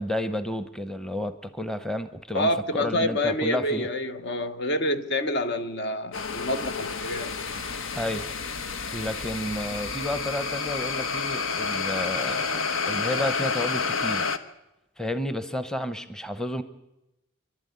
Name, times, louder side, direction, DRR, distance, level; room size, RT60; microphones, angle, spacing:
voice 1, 0.0-3.9 8.0-8.3 8.9-14.3 15.0-16.6, left 1 dB, 5° left, 0.9 m, -31 dB
voice 2, 2.3-7.4, left 1 dB, 55° left, 1.1 m, -27 dB
sound 1, 6.1-14.4, left 5 dB, 80° left, 1.1 m, -29 dB
25.0 x 12.0 x 9.4 m
head